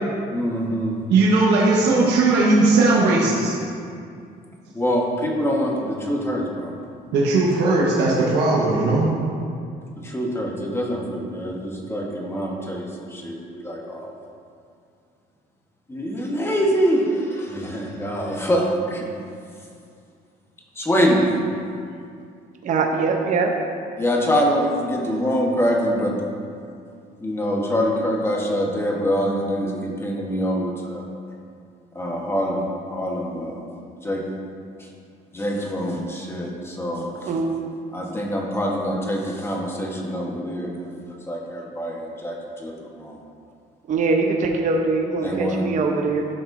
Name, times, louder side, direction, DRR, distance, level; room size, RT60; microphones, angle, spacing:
voice 1, 0.3-1.0 4.7-6.7 10.0-14.1 15.9-19.1 20.7-21.2 24.0-26.1 27.2-31.0 31.9-33.7 34.0-34.3 34.8-34.9 35.3-37.3 37.9-43.2 45.2-45.6, equal, 15° left, -1 dB, 1.2 m, -25 dB
voice 2, 1.1-3.6 7.1-9.1, right 3 dB, 90° right, -5 dB, 1.2 m, -18 dB
voice 3, 22.6-23.5 37.3-37.5 43.9-46.3, right 3 dB, 50° right, 2 dB, 0.7 m, -22 dB
11.5 x 5.8 x 2.6 m, 2.3 s
cardioid pair, 110°, 17 cm